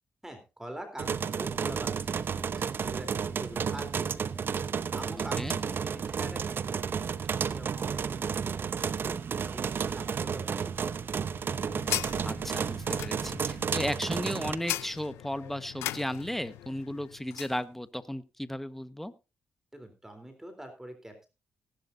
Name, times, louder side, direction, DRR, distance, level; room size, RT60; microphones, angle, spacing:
voice 1, 0.2-2.2 2.5-4.4 4.9-10.7 19.7-21.3, right 1 dB, 10° right, 6 dB, 3.5 m, -45 dB
sound 1, 1.0-14.6, right 6 dB, 55° right, 0.8 m, -32 dB
voice 2, 5.2-5.6 12.2-19.1, left 1 dB, 5° left, 13 dB, 1.3 m, -35 dB
sound 2, 11.0-17.6, left 14 dB, 90° left, 0.6 m, -39 dB
19.0 x 11.5 x 2.7 m, 0.29 s
supercardioid pair, 55°, 4 cm